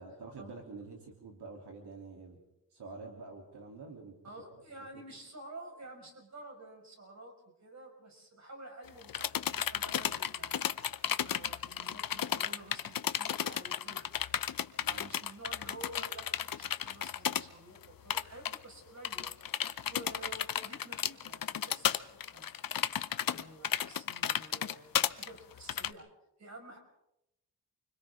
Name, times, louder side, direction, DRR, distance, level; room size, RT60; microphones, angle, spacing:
voice 1, 0.0-2.4 2.7-4.2 4.8-5.0 14.8-15.1, right 3 dB, 75° right, 0 dB, 3.3 m, -47 dB
voice 2, 4.2-7.3 7.6-10.6 11.2-14.1 14.9-19.3 19.9-22.5 23.3-26.1 26.4-26.8, right 1 dB, 40° right, 2 dB, 5.5 m, -50 dB
sound 1, 8.9-17.4 17.8-17.9 18.1-18.6 19.0-25.9, left 9 dB, 55° left, 0.8 m, -33 dB
30.0 x 25.0 x 3.7 m, 0.86 s
wide cardioid pair, 115°, 40 cm